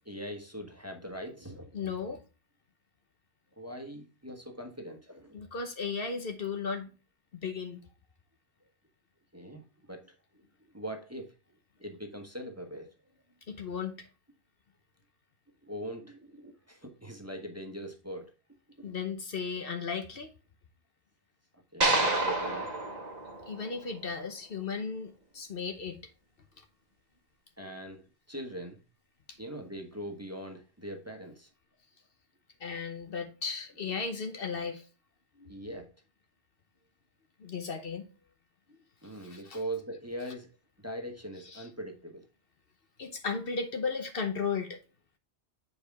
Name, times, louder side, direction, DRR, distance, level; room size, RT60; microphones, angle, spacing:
voice 1, 0.0-1.9 3.6-5.4 9.3-10.1 10.7-11.3 11.8-12.9 13.6-13.7 15.6-18.3 18.8-18.9 21.7-22.7 27.6-28.8 29.4-31.5 35.5-35.9 39.0-40.5 40.8-42.2, right 1 dB, 15° right, 1.2 m, -41 dB
voice 2, 1.7-2.2 5.3-6.9 7.3-7.8 13.5-13.9 18.8-20.3 23.5-26.0 29.3-29.4 32.6-34.8 35.4-35.5 37.4-38.1 39.2-39.6 41.5-41.7 43.0-44.8, left 5 dB, 60° left, 1.1 m, -35 dB
sound 1, 21.8-24.2, right 2 dB, 40° right, 1.2 m, -29 dB
7.7 x 4.7 x 3.5 m
omnidirectional pair, 1.1 m